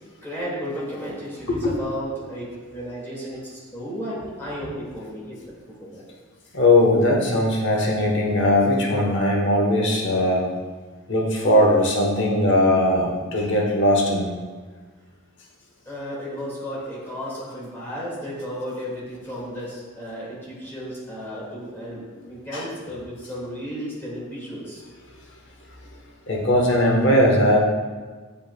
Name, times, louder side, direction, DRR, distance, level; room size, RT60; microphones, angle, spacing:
voice 1, 0.2-6.0 15.9-24.8, equal, 10° left, -7 dB, 1.9 m, -34 dB
voice 2, 6.5-10.5 11.1-14.3 22.5-22.6 26.3-27.6, left 1 dB, 60° left, -1 dB, 1.0 m, -19 dB
8.7 x 5.3 x 2.2 m, 1.4 s
head